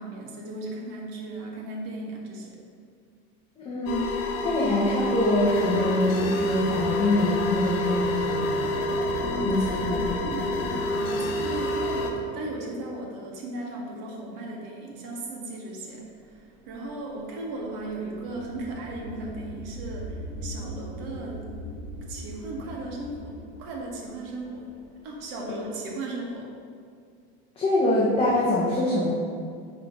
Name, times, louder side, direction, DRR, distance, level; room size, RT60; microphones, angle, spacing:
voice 1, 0.0-2.6 9.2-21.4 22.1-24.7 25.0-26.5, right 2 dB, 70° right, -2 dB, 1.7 m, -36 dB
voice 2, 3.6-4.1 4.4-8.1 9.4-10.2 27.6-29.1, left 1 dB, 20° left, -7 dB, 0.9 m, -24 dB
sound 1, 3.9-12.1, left 1 dB, 80° left, 1.2 m, -27 dB
sound 2, 16.3-25.3, equal, 10° right, 1.2 m, -40 dB
10.5 x 3.7 x 3.9 m, 2.2 s
cardioid pair, 165°, 29 cm